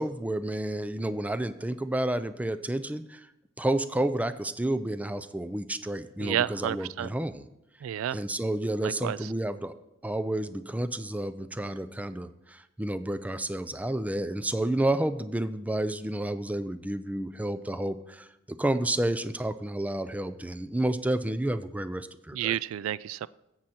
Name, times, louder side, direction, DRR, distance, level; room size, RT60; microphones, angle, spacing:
voice 1, 0.0-3.3 3.6-7.5 8.1-9.7 10.0-22.6, right 1 dB, 5° right, 12 dB, 0.4 m, -30 dB
voice 2, 6.2-7.1 7.8-8.2 8.8-9.2 22.3-23.3, right 11 dB, 80° right, 19 dB, 0.3 m, -30 dB
14.5 x 7.8 x 4.3 m, 0.87 s
head